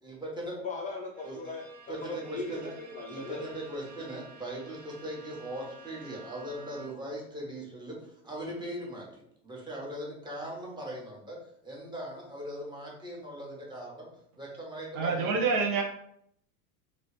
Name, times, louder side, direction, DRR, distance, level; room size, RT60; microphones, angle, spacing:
voice 1, 0.0-0.6 1.2-1.5 1.9-2.7 3.1-11.4 11.6-14.1 14.4-15.6, right 1 dB, 10° right, -3 dB, 1.1 m, -40 dB
voice 2, 0.6-1.9 2.2-3.5, left 3 dB, 20° left, -2 dB, 0.4 m, -39 dB
Bowed string instrument, 1.1-7.2, right 4 dB, 40° right, 0.8 m, -52 dB
voice 3, 14.9-15.8, right 4 dB, 75° right, 1 dB, 1.0 m, -27 dB
2.9 x 2.8 x 3.2 m, 0.71 s
hypercardioid pair, 105°, 44 cm